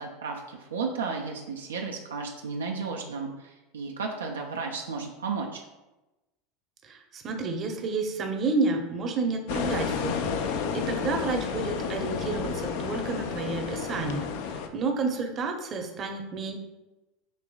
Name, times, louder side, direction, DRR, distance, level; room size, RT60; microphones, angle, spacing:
voice 1, 0.0-5.6, right 4 dB, 90° right, 1 dB, 0.4 m, -33 dB
voice 2, 6.8-10.3 10.7-16.6, right 3 dB, 40° right, 3 dB, 0.7 m, -30 dB
sound 1, 9.5-14.7, left 6 dB, 70° left, 0.4 m, -31 dB
5.3 x 2.9 x 2.3 m, 1.0 s
hypercardioid pair, 90°, 0 cm